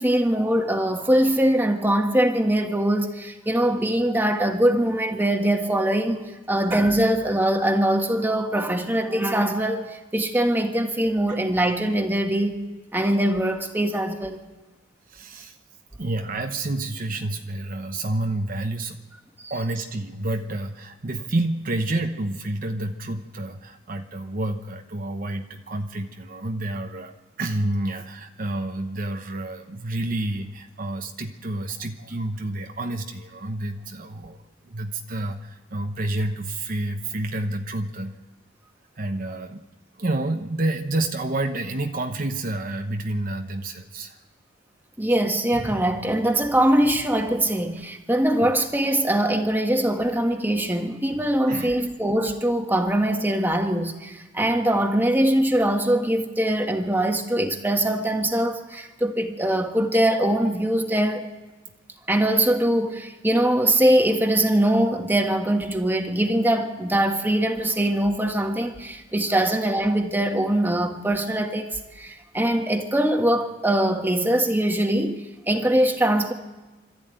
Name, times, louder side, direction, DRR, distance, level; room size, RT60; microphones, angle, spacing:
voice 1, 0.0-6.2 6.5-12.6 12.9-14.4 19.4-19.5 45.0-61.3 62.1-76.3, right 1 dB, 10° right, 1.6 m, -22 dB
voice 2, 15.1-15.6 16.0-19.0 19.5-38.2 39.0-39.6 40.0-44.2 48.4-48.5 51.5-51.8 69.4-69.5, right 2 dB, 50° right, 1.0 m, -29 dB
24.0 x 13.5 x 9.1 m
head